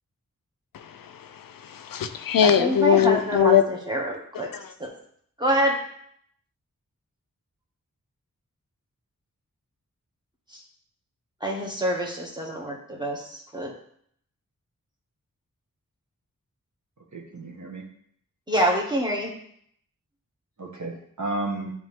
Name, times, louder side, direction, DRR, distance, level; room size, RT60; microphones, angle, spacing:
voice 1, 0.7-3.6 4.3-4.7, left 9 dB, 85° left, 0.5 m, -22 dB
voice 2, 2.4-3.6 3.9-4.5 4.8-4.9 5.4-5.8 11.4-13.7 18.5-19.3, right 1 dB, 15° right, 1.8 m, -26 dB
voice 3, 17.1-17.8 18.6-18.8 20.6-21.7, right 2 dB, 60° right, 1.3 m, -32 dB
9.1 x 3.2 x 3.6 m
cardioid pair, 45°, 33 cm